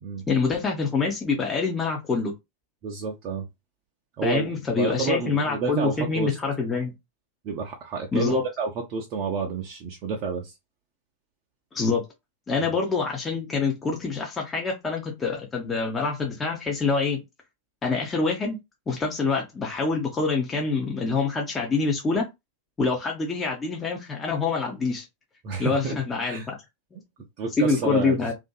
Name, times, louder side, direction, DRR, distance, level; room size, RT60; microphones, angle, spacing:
voice 1, 0.3-2.3 4.2-6.9 8.1-8.4 11.7-12.0 12.5-17.2 17.8-18.6 18.9-22.3 22.8-25.1 25.6-26.5 26.9-27.0 27.6-28.3, left 4 dB, 20° left, 0.6 m, -26 dB
voice 2, 2.8-3.5 4.2-4.5 4.8-6.4 7.4-10.5 25.4-25.9 26.2-26.5 27.4-28.3, right 4 dB, 40° right, 0.5 m, -29 dB
2.5 x 2.5 x 2.2 m
figure-of-eight pair, 90°, 0 cm